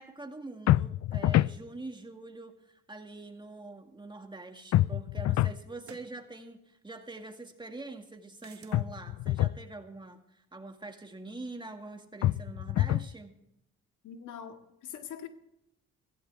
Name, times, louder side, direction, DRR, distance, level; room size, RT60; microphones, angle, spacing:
voice 1, 0.0-13.4, right 2 dB, 15° right, 2.1 m, -44 dB
sound 1, 0.7-1.6 4.7-5.6 8.7-9.6 12.2-13.1, left 14 dB, 60° left, 0.4 m, -26 dB
sound 2, 4.4-4.5 5.8-6.2 8.4-8.8, right 7 dB, 50° right, 1.7 m, -52 dB
voice 2, 14.0-15.3, left 8 dB, 80° left, 2.0 m, -43 dB
16.5 x 15.5 x 3.5 m
cardioid pair, 90°, 30 cm